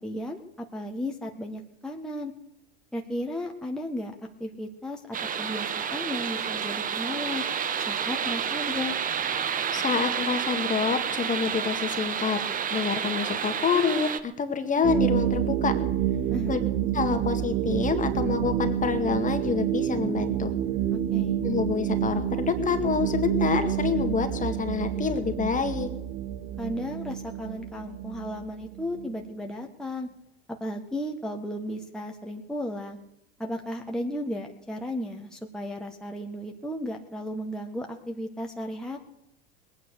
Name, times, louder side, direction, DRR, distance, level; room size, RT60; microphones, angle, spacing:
voice 1, 0.0-2.3 2.9-4.1 4.4-7.4 7.8-8.9 16.3-16.7 21.1-21.4 26.6-30.1 30.5-33.0 33.4-39.0, left 1 dB, ahead, 1 dB, 1.7 m, -34 dB
sound 1, 5.1-14.2, right 8 dB, 25° right, 1.0 m, -30 dB
voice 2, 9.7-12.4 12.7-15.7 16.5-16.6 16.9-20.5 21.4-25.9, left 6 dB, 25° left, 7 dB, 2.0 m, -27 dB
sound 2, 14.8-29.2, right 11 dB, 50° right, 1.7 m, -28 dB
20.5 x 9.3 x 6.6 m, 0.79 s
hypercardioid pair, 85°, 33 cm